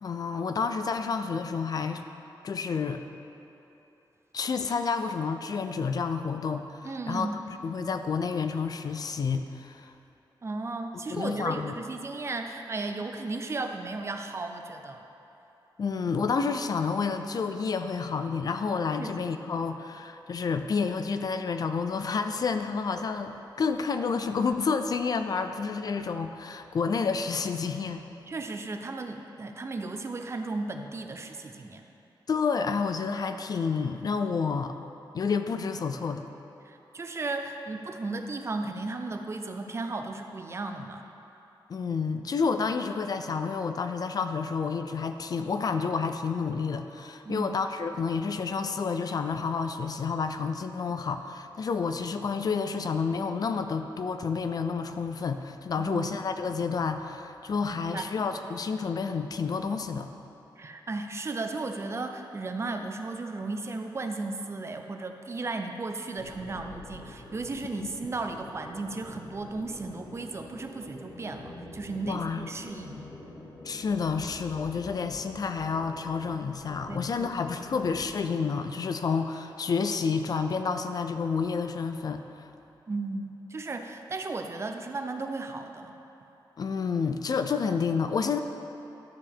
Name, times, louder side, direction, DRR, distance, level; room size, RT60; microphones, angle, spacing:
voice 1, 0.0-2.0 2.4-3.0 4.3-7.3 7.6-9.9 11.1-11.7 15.8-28.1 32.3-34.8 35.1-36.2 41.7-60.1 67.8-67.9 72.0-72.5 73.6-82.2 86.6-88.4, left 5 dB, 50° left, 8 dB, 0.4 m, -29 dB
voice 2, 6.8-7.3 10.4-15.0 19.0-19.3 28.3-31.8 36.6-41.0 47.3-47.6 55.8-56.2 57.7-58.1 60.6-73.0 76.9-77.3 82.9-85.9, right 3 dB, 35° right, 5 dB, 0.5 m, -35 dB
sound 1, 66.2-78.1, left 2 dB, 85° left, 1.3 m, -46 dB
12.5 x 6.9 x 3.6 m, 3.0 s
wide cardioid pair, 145°, 8 cm